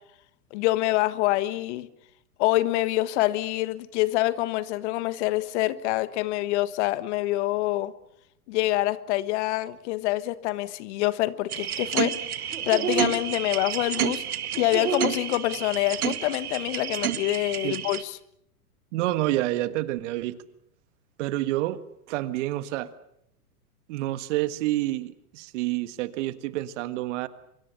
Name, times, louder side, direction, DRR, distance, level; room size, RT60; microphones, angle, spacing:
voice 1, 0.5-1.9 2.4-7.9 8.5-14.2 14.6-18.2, left 17 dB, 50° left, 1.5 m, -26 dB
sound 1, 11.5-18.0, right 9 dB, 75° right, 1.9 m, -29 dB
voice 2, 18.9-20.4 21.2-21.8 22.1-22.9 23.9-27.3, right 16 dB, 50° right, 1.7 m, -28 dB
25.0 x 23.0 x 7.0 m
hypercardioid pair, 110°, 44 cm